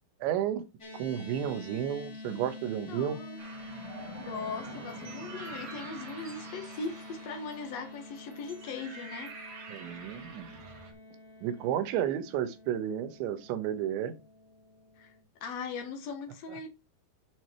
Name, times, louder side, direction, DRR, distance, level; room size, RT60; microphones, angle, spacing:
voice 1, 0.2-0.6 0.9-3.2 9.7-10.6 11.4-14.1, right 10 dB, 80° right, 3.4 m, -32 dB
sound 1, 0.8-15.2, left 2 dB, 20° left, 1.8 m, -47 dB
voice 2, 2.9-3.4 4.2-9.3 9.6-10.0 15.0-15.1 15.4-16.7, left 4 dB, 90° left, 1.4 m, -40 dB
sound 2, 3.4-10.9, right 3 dB, 45° right, 3.1 m, -46 dB
8.7 x 6.3 x 4.5 m
omnidirectional pair, 5.3 m